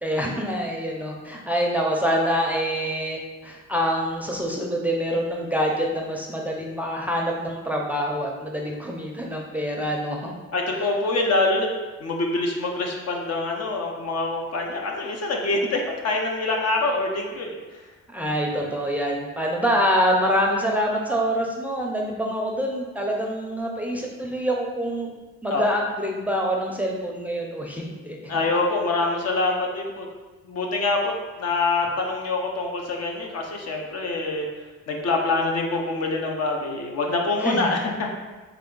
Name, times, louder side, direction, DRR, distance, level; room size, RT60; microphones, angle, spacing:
voice 1, 0.0-10.3 18.1-25.1 25.4-28.2 37.4-37.9, equal, 5° right, -1 dB, 0.5 m, -26 dB
voice 2, 10.5-11.7 12.0-17.6 25.5-25.6 28.3-30.1 30.4-31.1 31.4-34.5 34.9-38.2, left 2 dB, 55° left, 1 dB, 0.8 m, -25 dB
3.5 x 3.4 x 3.8 m, 1.3 s
cardioid pair, 90°, 30 cm